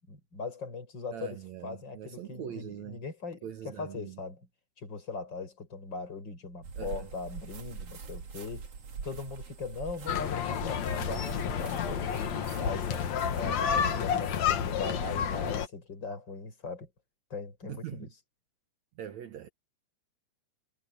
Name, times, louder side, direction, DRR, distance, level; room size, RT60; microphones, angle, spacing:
voice 1, 0.0-4.5 4.8-8.7 9.0-16.9 17.3-18.2, left 4 dB, 30° left, 6.8 m, -40 dB
voice 2, 1.1-3.0 3.4-4.2 6.8-7.1 17.7-18.1 19.0-19.5, right 10 dB, 60° right, 2.0 m, -42 dB
sound 1, 6.6-14.1, right 5 dB, 45° right, 2.8 m, -44 dB
sound 2, 10.1-15.7, left 7 dB, 55° left, 2.4 m, -30 dB
omnidirectional pair, 4.2 m